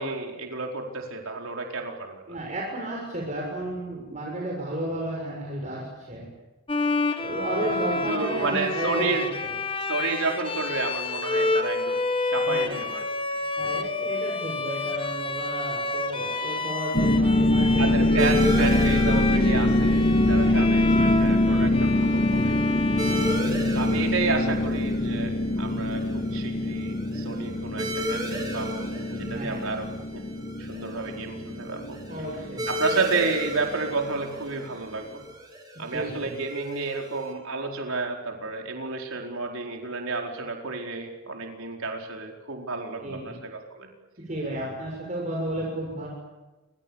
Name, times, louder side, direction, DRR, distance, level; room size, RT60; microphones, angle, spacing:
voice 1, 0.0-2.2 7.6-7.8 8.1-9.3 9.9-12.0 12.3-13.1 13.6-13.8 17.8-22.6 23.7-30.3 30.6-32.0 32.7-35.2 35.8-43.9, right 3 dB, 75° right, 2 dB, 4.6 m, -31 dB
voice 2, 2.3-6.3 7.2-9.1 12.5-12.8 13.6-18.8 20.4-20.7 23.0-23.6 29.2-29.6 32.1-32.8 35.7-36.4 43.0-43.4 44.2-46.1, right 1 dB, 35° right, -2 dB, 6.9 m, -33 dB
Bowed string instrument, 6.7-24.1, left 2 dB, 25° left, 1.8 m, -29 dB
sound 1, 16.9-34.1, left 1 dB, 40° left, 2.9 m, -24 dB
sound 2, 18.2-37.3, equal, 20° right, 6.3 m, -36 dB
29.5 x 26.0 x 7.2 m, 1.1 s
head